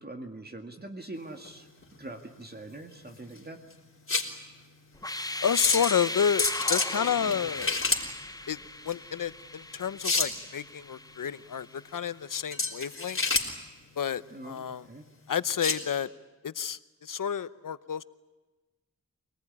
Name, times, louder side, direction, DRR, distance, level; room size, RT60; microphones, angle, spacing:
voice 1, 0.0-1.7 2.0-3.6 14.3-15.0, right 2 dB, 30° right, 4 dB, 2.1 m, -43 dB
sound 1, 1.2-15.9, left 3 dB, 40° left, 3.8 m, -32 dB
sound 2, 4.9-11.8, left 2 dB, 10° left, 0.9 m, -37 dB
voice 2, 5.4-7.8 8.5-8.6 8.8-13.2 14.0-14.8 15.3-16.1 16.4-18.0, left 8 dB, 75° left, 16 dB, 0.9 m, -30 dB
25.5 x 19.0 x 10.0 m, 1.2 s
wide cardioid pair, 90°, 33 cm